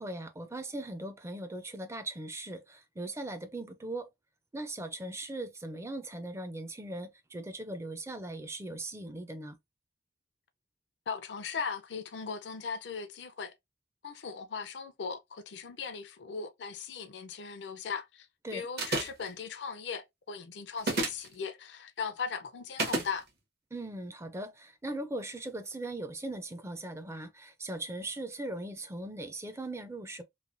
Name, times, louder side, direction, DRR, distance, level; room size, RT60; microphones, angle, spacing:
voice 1, 0.0-4.1 4.5-9.6 18.4-18.7 23.7-30.2, right 1 dB, 15° right, 0.4 m, -39 dB
voice 2, 11.1-13.5 14.0-23.3, left 5 dB, 75° left, 0.5 m, -38 dB
sound 1, 18.8-19.3 20.8-21.3 22.8-23.1, right 2 dB, 65° right, 1.1 m, -30 dB
3.1 x 2.1 x 2.5 m
head